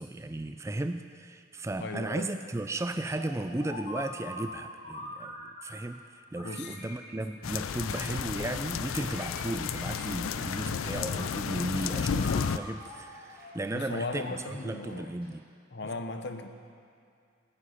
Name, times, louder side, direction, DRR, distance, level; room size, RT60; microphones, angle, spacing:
voice 1, 0.0-15.4, right 1 dB, 15° right, 8 dB, 0.3 m, -35 dB
voice 2, 1.8-2.3 6.4-6.8 13.7-15.1 15.7-16.5, left 2 dB, 55° left, 7 dB, 0.9 m, -37 dB
sound 1, 3.2-5.9 6.4-8.2 8.8-9.9 10.2-11.7 12.1-13.9, left 1 dB, 35° left, 1.9 m, -45 dB
sound 2, 7.4-12.6, left 6 dB, 80° left, 0.4 m, -32 dB
Laughter / Applause / Crowd, 7.8-15.5, right 1 dB, 45° right, 2.4 m, -57 dB
15.0 x 9.8 x 5.7 m, 2.4 s
head